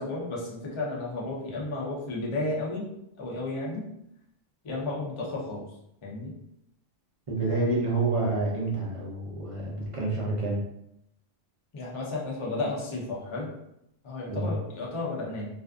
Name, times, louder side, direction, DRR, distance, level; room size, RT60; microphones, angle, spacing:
voice 1, 0.0-2.8 3.2-3.9 4.6-5.6 6.0-6.3 7.5-7.6 11.7-13.5 14.0-15.5, left 2 dB, 40° left, -3 dB, 0.4 m, -33 dB
voice 2, 7.3-10.6 14.3-14.5, right 2 dB, 45° right, -4 dB, 0.4 m, -28 dB
2.5 x 2.4 x 2.3 m, 0.80 s
omnidirectional pair, 1.3 m